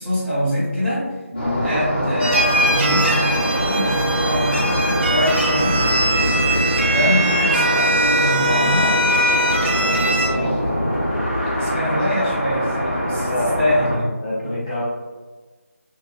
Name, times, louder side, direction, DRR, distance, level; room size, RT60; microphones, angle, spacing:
voice 1, 0.0-1.2 1.6-5.8 6.9-9.0 9.8-10.8 11.6-14.1 14.3-14.6, equal, ahead, -19 dB, 0.9 m, -24 dB
sound 1, 1.4-14.0, equal, 40° left, 1.0 m, -23 dB
sound 2, 2.2-10.3, right 1 dB, 50° right, 0.9 m, -21 dB
voice 2, 14.2-14.8, left 1 dB, 25° left, -9 dB, 0.5 m, -25 dB
4.8 x 2.4 x 2.3 m, 1.3 s
figure-of-eight pair, 170°, 8 cm